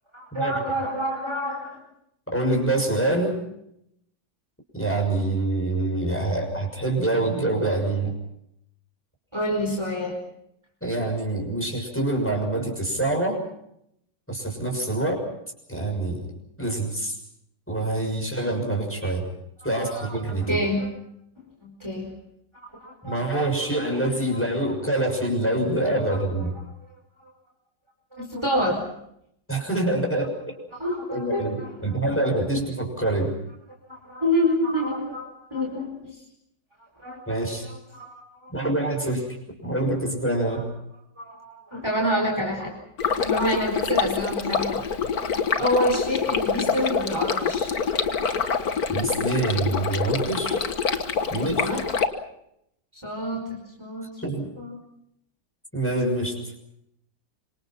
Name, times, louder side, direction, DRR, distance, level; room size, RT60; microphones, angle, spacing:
voice 1, 0.1-1.8 9.3-10.2 19.0-19.1 19.7-20.9 21.6-22.1 22.5-23.8 24.3-24.4 26.1-26.2 27.2-27.3 28.2-28.8 30.8-31.7 33.9-36.2 37.0-37.2 37.9-38.5 41.2-42.7 43.2-44.8 45.6-47.7 51.3-51.8 53.0-54.2 54.6-54.8, equal, 15° right, -1 dB, 5.0 m, -28 dB
voice 2, 2.3-3.4 4.7-8.2 10.8-13.4 14.3-15.2 15.7-16.3 16.6-17.2 17.7-19.3 19.6-20.6 23.0-26.6 29.5-30.3 31.1-33.4 37.3-37.7 38.5-39.4 39.6-40.7 48.9-50.6 51.3-51.7 54.2-54.5 55.7-56.4, right 2 dB, 5° left, 2 dB, 6.4 m, -25 dB
Stream, 43.0-52.1, left 6 dB, 55° left, 1.9 m, -26 dB
26.5 x 26.0 x 5.9 m, 0.76 s
omnidirectional pair, 2.0 m